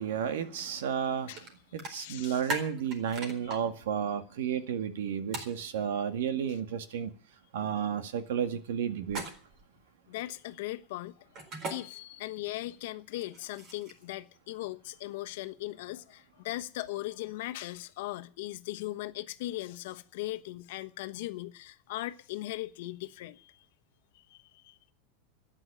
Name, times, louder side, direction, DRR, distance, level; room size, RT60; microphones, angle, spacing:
voice 1, 0.0-1.3 1.7-7.1 7.5-9.2, right 8 dB, 85° right, 1.9 m, -32 dB
voice 2, 1.3-2.5 3.1-3.2 3.4-3.6 10.1-11.3 11.7-23.7 24.1-24.9, left 17 dB, 65° left, 1.2 m, -39 dB
sound 1, 1.4-1.5 1.8-3.6 5.3-5.5 9.0-9.6 11.3-11.8 13.1-14.0, right 2 dB, 35° right, 4.2 m, -37 dB
13.5 x 9.8 x 8.9 m
supercardioid pair, 160°, 0 cm